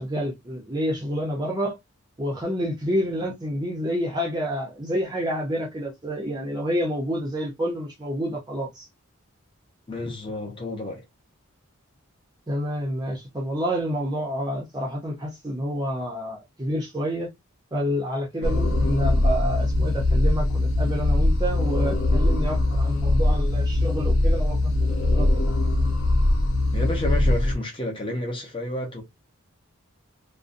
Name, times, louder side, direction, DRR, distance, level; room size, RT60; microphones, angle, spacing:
voice 1, 0.0-1.7 2.2-8.9 12.5-17.3 17.7-25.6, equal, 20° right, 0.5 m, -28 dB
voice 2, 9.9-11.0 18.4-18.6 26.7-29.0, left 1 dB, 25° left, 0.7 m, -30 dB
sound 1, 18.4-27.6, left 1 dB, 65° left, 0.5 m, -21 dB
2.5 x 2.1 x 2.5 m
head